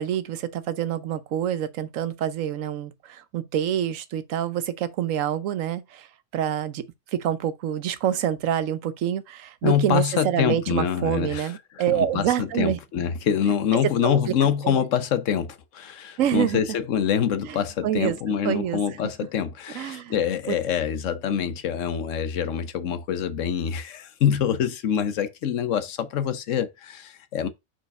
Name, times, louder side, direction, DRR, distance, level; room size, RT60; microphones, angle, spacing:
voice 1, 0.0-6.1 6.3-12.8 14.0-14.3 14.6-14.8 16.2-16.6 17.5-17.6 17.8-18.2 18.4-18.8 19.7-20.2, right 10 dB, 85° right, 1.1 m, -26 dB
voice 2, 9.6-27.5, left 8 dB, 75° left, 1.1 m, -25 dB
4.7 x 4.4 x 5.3 m
omnidirectional pair, 1.3 m